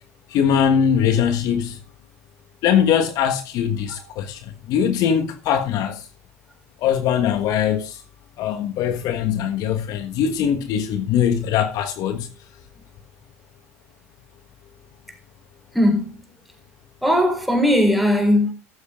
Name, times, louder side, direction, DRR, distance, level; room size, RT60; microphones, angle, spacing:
voice 1, 0.3-1.8 2.6-6.1 6.8-8.0 8.4-12.3, left 8 dB, 50° left, 1.4 m, -21 dB
voice 2, 15.7-16.2 17.0-18.5, left 1 dB, ahead, 4.0 m, -18 dB
13.5 x 13.5 x 2.5 m
hypercardioid pair, 80°, 8 cm